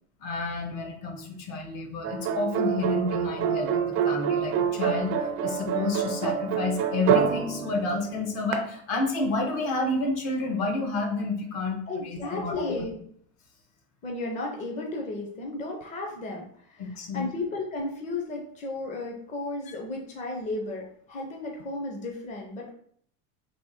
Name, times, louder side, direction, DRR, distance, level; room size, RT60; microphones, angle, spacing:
voice 1, 0.2-5.1 5.4-12.9 16.8-17.2 19.7-19.8, left 2 dB, 55° left, 3 dB, 1.2 m, -30 dB
sound 1, 2.0-8.5, right 8 dB, 35° right, 0.4 m, -27 dB
voice 2, 11.9-13.0 14.0-22.7, left 2 dB, 15° left, 0 dB, 0.6 m, -34 dB
3.5 x 3.0 x 4.3 m, 0.63 s
supercardioid pair, 145°, 43 cm